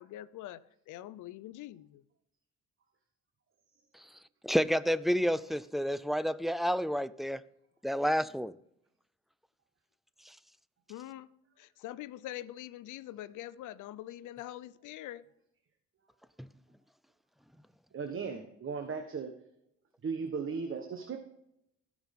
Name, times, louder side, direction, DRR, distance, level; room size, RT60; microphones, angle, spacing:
voice 1, 0.0-2.0 10.9-11.3 11.6-15.3, left 14 dB, 80° left, 0.6 m, -44 dB
voice 2, 4.4-7.4 7.8-8.6, equal, ahead, 0.3 m, -29 dB
voice 3, 17.9-19.3 20.0-21.2, right 5 dB, 45° right, 1.2 m, -36 dB
16.5 x 6.2 x 3.6 m
cardioid pair, 90°, 30 cm